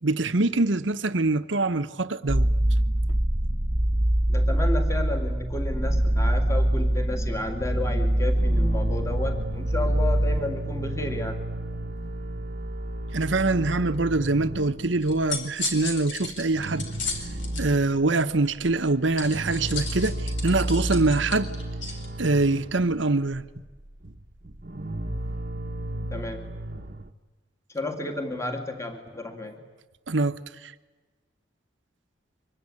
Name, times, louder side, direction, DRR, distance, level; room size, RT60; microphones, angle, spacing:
voice 1, 0.0-2.5 13.1-16.9 17.6-21.5 22.2-23.4 30.1-30.7, right 2 dB, 75° right, 1.1 m, -24 dB
sound 1, 2.3-10.4, right 1 dB, 25° right, 1.1 m, -23 dB
voice 2, 4.3-11.4 26.1-26.5 27.7-29.6, left 2 dB, 15° left, 2.4 m, -32 dB
sound 2, 8.1-15.4 15.7-15.8 16.2-18.1 18.6-27.1, right 1 dB, 50° right, 1.1 m, -33 dB
sound 3, 15.0-17.6 19.2-22.1, left 4 dB, 75° left, 4.5 m, -34 dB
25.0 x 23.0 x 9.9 m
head